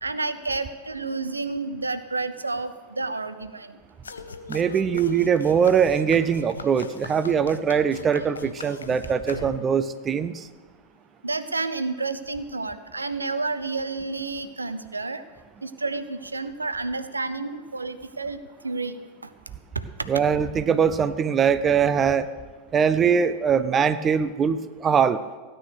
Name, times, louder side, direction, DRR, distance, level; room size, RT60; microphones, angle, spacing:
voice 1, 0.0-3.8 11.2-15.2 15.6-19.0, right 3 dB, 80° right, 11 dB, 0.8 m, -30 dB
sound 1, 4.0-9.9, left 4 dB, 75° left, 0.8 m, -40 dB
voice 2, 4.5-10.5 20.1-22.3 22.7-25.2, right 7 dB, 25° right, 14 dB, 0.6 m, -22 dB
16.5 x 9.0 x 6.5 m, 1.4 s
figure-of-eight pair, 90°, 0 cm